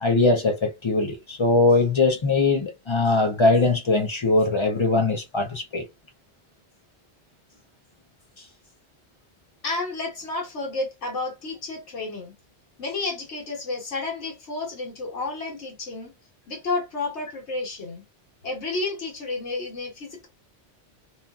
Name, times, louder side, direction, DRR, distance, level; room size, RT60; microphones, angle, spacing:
voice 1, 0.0-5.8, left 3 dB, 50° left, 0.3 m, -21 dB
voice 2, 9.6-12.3 12.8-16.1 16.5-18.0 18.4-20.3, left 3 dB, 85° left, 1.4 m, -31 dB
2.8 x 2.4 x 2.3 m
omnidirectional pair, 1.1 m